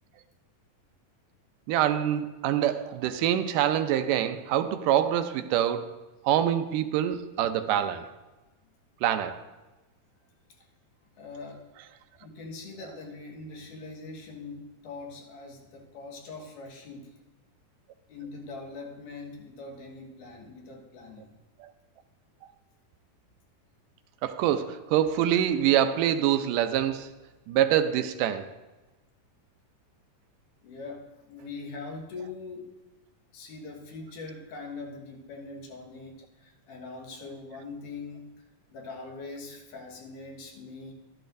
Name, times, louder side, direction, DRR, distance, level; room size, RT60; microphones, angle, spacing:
voice 1, 1.7-5.9 6.2-8.1 9.0-9.4 21.6-21.7 24.2-27.1 27.5-28.5, right 11 dB, 85° right, 2.2 m, -25 dB
voice 2, 11.2-11.7 12.2-17.2 18.1-21.3 30.6-32.7 33.3-38.3 38.7-40.9, left 3 dB, 75° left, 3.0 m, -42 dB
12.5 x 12.0 x 2.6 m
omnidirectional pair, 3.7 m